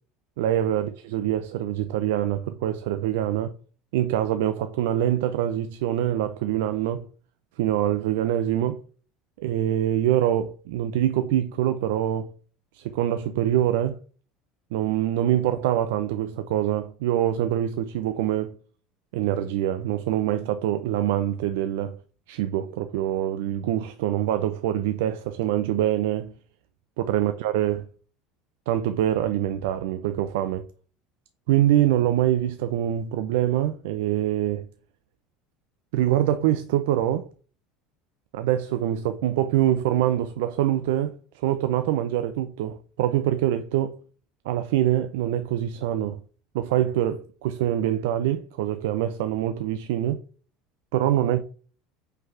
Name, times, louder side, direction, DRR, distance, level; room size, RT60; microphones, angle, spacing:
voice 1, 0.4-3.5 3.9-7.1 7.6-8.8 9.4-12.3 12.7-14.0 14.7-18.6 19.1-22.0 22.3-26.3 27.0-27.9 28.7-30.7 31.5-34.7 35.9-37.3 38.3-41.2 41.4-44.0 44.5-46.2 46.5-50.2 50.9-51.4, right 12 dB, 85° right, 0.5 m, -24 dB
5.4 x 4.0 x 5.5 m
cardioid pair, 170°, 0 cm